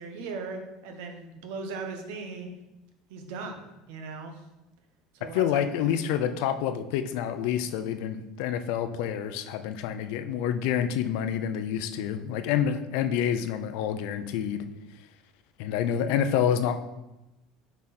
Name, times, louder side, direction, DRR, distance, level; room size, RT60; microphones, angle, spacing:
voice 1, 0.0-2.5 3.1-4.4 5.1-5.9, right 4 dB, 75° right, 4 dB, 1.1 m, -38 dB
voice 2, 5.3-14.7 15.6-16.8, left 9 dB, 70° left, 9 dB, 0.5 m, -28 dB
7.3 x 4.6 x 4.3 m, 0.99 s
cardioid pair, 145°, 0 cm